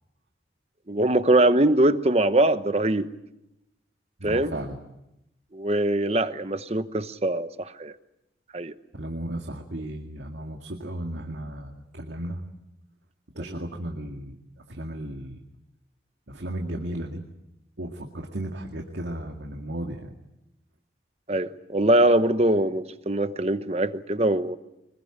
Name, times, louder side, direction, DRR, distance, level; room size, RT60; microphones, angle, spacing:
voice 1, 0.9-3.1 4.2-4.5 5.5-7.9 8.5-8.7 21.3-24.6, right 1 dB, 35° right, 12 dB, 1.0 m, -22 dB
voice 2, 4.2-4.8 8.9-12.4 13.4-14.4 14.7-15.4 16.3-17.2 17.8-20.1, right 1 dB, 75° right, 3 dB, 2.1 m, -34 dB
25.5 x 21.0 x 8.9 m, 0.89 s
head